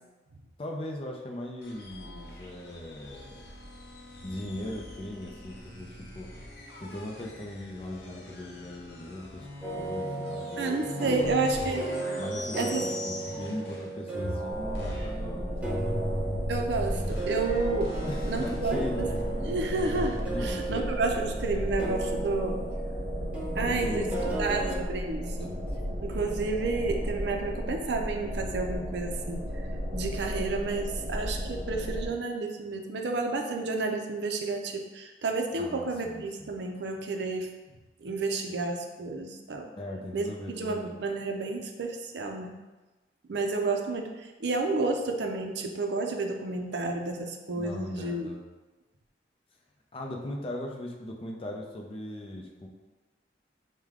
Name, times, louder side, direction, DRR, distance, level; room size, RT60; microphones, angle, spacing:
voice 1, 0.6-3.4 4.2-6.3 6.8-9.5 9.8-11.7 12.2-16.2 18.1-19.0 20.3-20.9 23.5-24.8 25.5-26.0 35.6-36.6 39.8-41.0 47.6-48.4 49.9-52.7, left 1 dB, 30° left, 0 dB, 0.5 m, -39 dB
sound 1, 1.6-13.9 14.1-20.2, left 1 dB, 65° left, 0.7 m, -39 dB
sound 2, 9.6-24.8, right 3 dB, 5° right, 0.7 m, -36 dB
voice 2, 10.6-11.8 12.6-12.9 16.5-18.0 18.2-19.1 19.5-22.6 23.6-24.1 24.4-25.5 26.0-29.7 29.9-37.5 38.0-39.7 40.1-40.3 40.6-42.6 43.3-48.3, right 3 dB, 70° right, 3 dB, 0.5 m, -31 dB
sound 3, 14.5-32.1, equal, 35° right, 1.0 m, -34 dB
4.8 x 2.2 x 3.6 m, 1.2 s
head